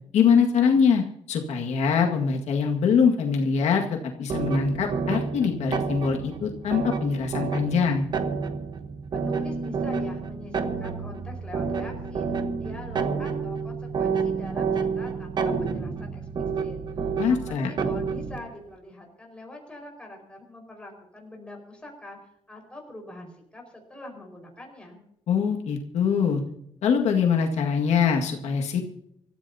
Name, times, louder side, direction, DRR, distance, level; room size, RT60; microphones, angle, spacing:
voice 1, 0.1-8.1 17.2-17.7 25.3-26.4 26.8-28.8, left 6 dB, 75° left, 1 dB, 1.9 m, -23 dB
sound 1, 4.3-18.4, right 5 dB, 40° right, 1.2 m, -29 dB
voice 2, 9.1-12.3 12.6-22.2 22.5-25.0, left 1 dB, 10° left, 1 dB, 5.0 m, -43 dB
25.5 x 14.0 x 2.8 m, 0.75 s
cardioid pair, 170°, 12 cm